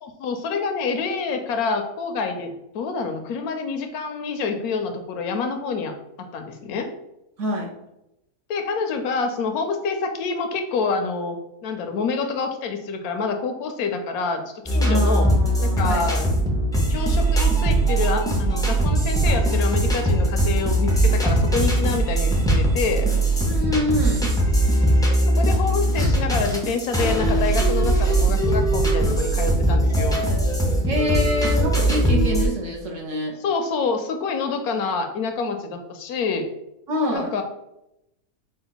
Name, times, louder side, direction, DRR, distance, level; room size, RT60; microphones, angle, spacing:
voice 1, 0.0-5.9 6.3-6.9 8.5-11.4 11.6-15.3 15.6-16.3 16.9-23.1 25.1-30.2 33.4-36.5 37.1-37.4, left 4 dB, 75° left, 6 dB, 1.1 m, -27 dB
voice 2, 7.4-7.7 14.8-16.1 23.4-24.2 30.9-33.4 36.9-37.3, equal, 60° right, -1 dB, 1.1 m, -25 dB
sound 1, 14.7-32.5, right 1 dB, 5° left, 0.3 m, -20 dB
5.2 x 2.4 x 3.9 m, 0.87 s
omnidirectional pair, 1.6 m